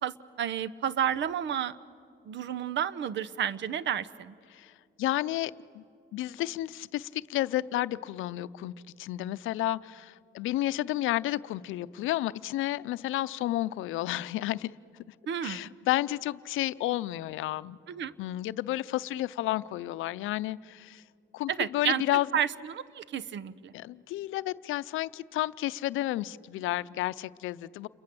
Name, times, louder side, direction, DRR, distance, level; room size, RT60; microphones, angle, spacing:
voice 1, 0.0-1.8 2.3-4.3 15.3-15.6 17.9-18.1 21.5-22.0 22.3-23.7, right 9 dB, 65° right, 18 dB, 0.9 m, -31 dB
voice 2, 5.0-5.8 6.1-14.7 15.1-15.2 15.4-17.8 18.2-21.0 21.3-22.3 23.7-27.9, left 15 dB, 85° left, 16 dB, 0.6 m, -31 dB
29.0 x 22.5 x 7.7 m, 2.4 s
cardioid pair, 90°, 20 cm